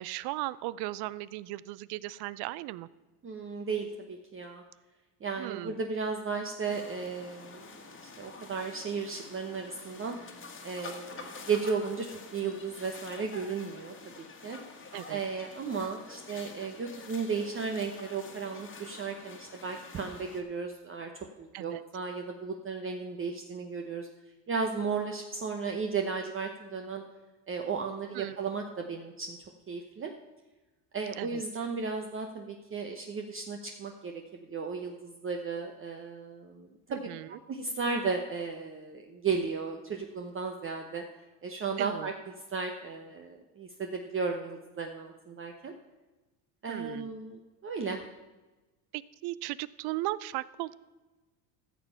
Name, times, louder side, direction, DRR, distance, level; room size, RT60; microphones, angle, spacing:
voice 1, 0.0-2.9 5.4-5.8 14.9-15.2 21.5-21.8 28.1-28.4 31.2-31.4 37.1-37.4 41.8-42.1 46.7-47.1 48.9-50.7, right 17 dB, 55° right, 19 dB, 0.5 m, -37 dB
voice 2, 3.2-4.6 5.2-7.7 8.0-10.2 10.6-12.1 12.3-14.6 15.1-21.1 21.4-24.1 24.5-27.0 27.5-29.4 29.7-30.1 30.9-37.0 37.5-41.0 41.4-42.1 42.5-45.7 46.6-48.0, right 5 dB, 25° right, 3 dB, 0.9 m, -35 dB
sound 1, 6.6-20.4, left 4 dB, 25° left, 1.8 m, -48 dB
14.5 x 6.8 x 5.6 m, 1.2 s
supercardioid pair, 105°, 49 cm